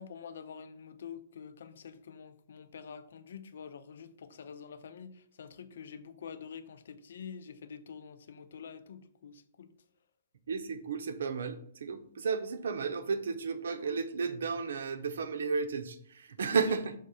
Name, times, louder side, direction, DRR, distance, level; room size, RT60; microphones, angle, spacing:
voice 1, 0.0-9.7 16.6-17.0, left 7 dB, 75° left, 0.6 m, -47 dB
voice 2, 10.5-17.0, right 5 dB, 85° right, 0.8 m, -33 dB
6.4 x 3.6 x 5.5 m
hypercardioid pair, 160°, 0 cm